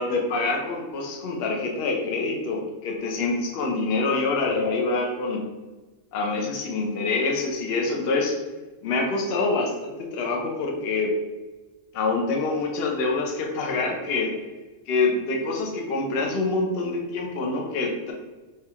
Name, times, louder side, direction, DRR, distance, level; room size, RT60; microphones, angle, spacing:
voice 1, 0.0-5.4 6.1-8.4 8.8-11.1 11.9-14.3 14.9-18.1, left 3 dB, 55° left, 0 dB, 0.7 m, -26 dB
4.8 x 2.3 x 2.8 m, 1.3 s
omnidirectional pair, 1.5 m